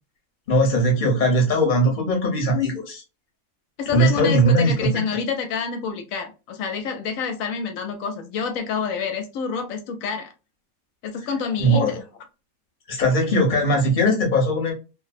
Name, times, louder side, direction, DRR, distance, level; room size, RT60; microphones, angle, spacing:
voice 1, 0.5-3.0 3.9-5.2 11.6-12.0 12.9-14.7, equal, 40° left, 0.9 m, -20 dB
voice 2, 3.8-10.3 11.0-12.0, left 6 dB, 75° left, 0.9 m, -28 dB
2.8 x 2.0 x 2.4 m
omnidirectional pair, 1.5 m